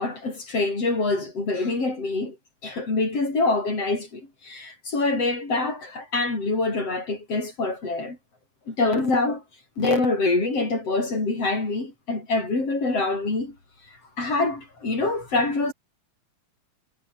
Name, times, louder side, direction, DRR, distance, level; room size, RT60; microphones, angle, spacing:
voice 1, 0.0-2.4 2.6-8.2 8.7-9.4 9.8-13.6 14.2-15.7, left 3 dB, 55° left, 8.1 m, -25 dB
omnidirectional pair, 3.3 m